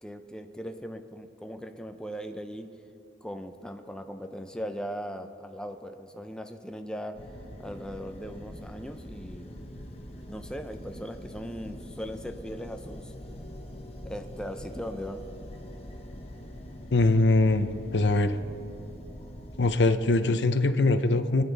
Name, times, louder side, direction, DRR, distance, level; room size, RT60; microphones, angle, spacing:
voice 1, 0.0-2.7 3.2-7.2 7.6-9.5 10.3-13.1 14.0-15.2, equal, 5° left, 6 dB, 0.5 m, -39 dB
sound 1, 7.1-19.7, equal, 35° left, 1.2 m, -43 dB
voice 2, 16.9-18.4 19.6-21.4, left 2 dB, 80° left, 9 dB, 0.6 m, -22 dB
24.0 x 9.7 x 3.4 m, 2.7 s
head